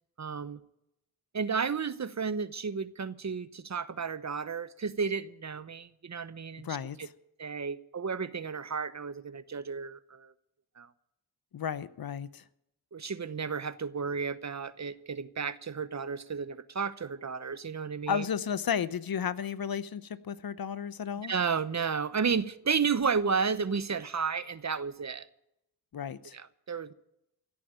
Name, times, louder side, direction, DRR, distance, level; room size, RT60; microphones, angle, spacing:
voice 1, 0.2-0.6 1.3-6.7 7.0-7.1 7.4-10.3 10.8-10.9 12.9-18.2 21.2-25.3 26.3-26.9, right 5 dB, 40° right, 1.0 m, -32 dB
voice 2, 6.6-7.1 11.5-12.4 18.1-21.3 25.9-26.4, left 7 dB, 60° left, 0.8 m, -33 dB
16.5 x 8.7 x 8.9 m
cardioid pair, 60°, 41 cm